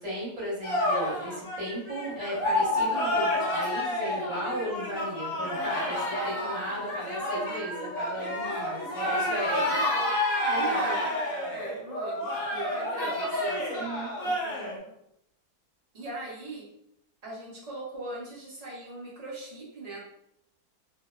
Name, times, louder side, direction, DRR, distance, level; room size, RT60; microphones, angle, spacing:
voice 1, 0.0-9.6 10.4-10.8 13.7-14.1 14.4-14.8, equal, 25° right, -7 dB, 1.0 m, -36 dB
sound 1, 0.6-14.8, left 1 dB, 70° left, 1.1 m, -29 dB
voice 2, 8.8-10.1 10.5-11.1 11.5-12.3 12.5-13.6 14.2-14.3 14.8-14.9 15.9-16.6 17.2-20.0, right 2 dB, 70° right, -7 dB, 0.3 m, -38 dB
2.7 x 2.1 x 2.2 m, 0.76 s
omnidirectional pair, 1.7 m